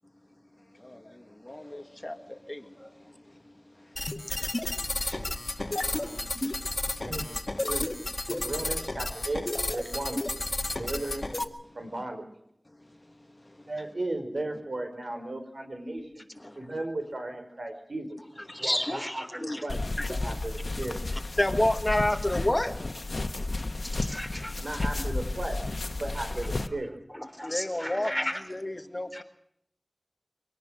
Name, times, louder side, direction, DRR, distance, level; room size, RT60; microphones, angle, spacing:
voice 1, 1.4-2.6 18.5-19.0 19.4-19.6 20.0-20.1 21.4-22.7 27.4-28.1 28.5-29.2, left 1 dB, 30° left, 8 dB, 1.7 m, -29 dB
sound 1, 3.9-11.4, left 2 dB, 50° left, 2.0 m, -32 dB
voice 2, 7.0-7.4 7.7-7.9 8.2-9.4 9.7-10.2 10.8-11.3 11.7-12.3 13.7-16.3 16.6-18.2 18.6-19.8 20.1-21.0 24.6-25.6 26.0-26.9, right 2 dB, 85° right, 6 dB, 4.9 m, -35 dB
voice 3, 18.5-19.6 23.3-23.4 23.8-24.9 27.1-28.4 29.1-29.2, equal, 5° left, 6 dB, 3.9 m, -35 dB
sound 2, 19.7-26.7, left 2 dB, 90° left, 1.1 m, -32 dB
24.5 x 18.0 x 6.4 m, 0.74 s
wide cardioid pair, 45°, 0 cm